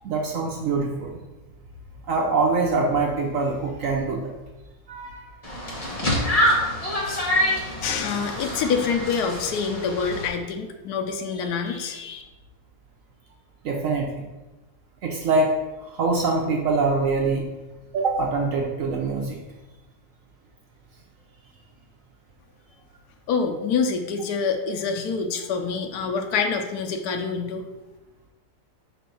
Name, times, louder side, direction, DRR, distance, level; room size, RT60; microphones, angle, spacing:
voice 1, 0.0-1.2 2.1-4.3 4.9-5.4 6.9-7.2 13.6-14.3 15.0-17.4 17.9-19.4, right 3 dB, 65° right, 0 dB, 1.0 m, -24 dB
sound 1, 5.4-10.3, equal, 25° left, 1.1 m, -26 dB
voice 2, 7.5-12.2 23.3-27.6, left 5 dB, 75° left, 4 dB, 1.2 m, -26 dB
4.6 x 4.3 x 5.4 m, 1.1 s
omnidirectional pair, 1.7 m